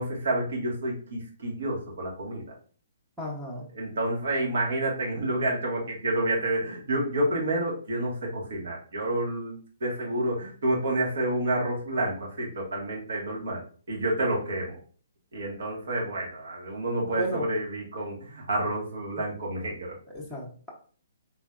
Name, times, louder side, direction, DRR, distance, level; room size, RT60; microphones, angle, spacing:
voice 1, 0.0-2.4 3.8-13.6 13.9-14.8 15.3-20.0, right 1 dB, 75° right, -2 dB, 1.6 m, -29 dB
voice 2, 3.2-3.7 17.1-17.5 20.1-20.7, equal, 5° right, -5 dB, 0.9 m, -34 dB
3.9 x 3.2 x 2.5 m, 0.42 s
hypercardioid pair, 150°, 0 cm